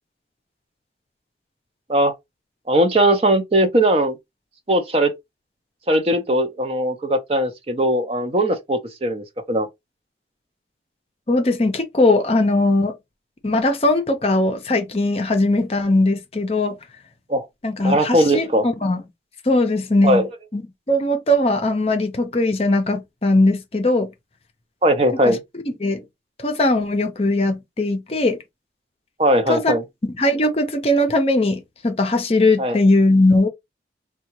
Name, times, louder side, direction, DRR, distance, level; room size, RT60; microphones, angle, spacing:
voice 1, 2.7-4.1 4.7-5.1 5.9-9.7 17.3-17.5 17.8-18.7 20.0-20.3 24.8-25.4 29.2-29.8 32.6-32.8, right 1 dB, 35° right, 0.5 m, -19 dB
voice 2, 11.3-12.9 13.4-16.8 17.6-19.0 19.5-20.3 20.5-20.6 20.9-24.1 25.3-25.4 25.8-26.0 26.4-28.4 29.5-29.7 30.2-33.5, left 2 dB, 35° left, 0.6 m, -19 dB
3.6 x 2.2 x 2.9 m
head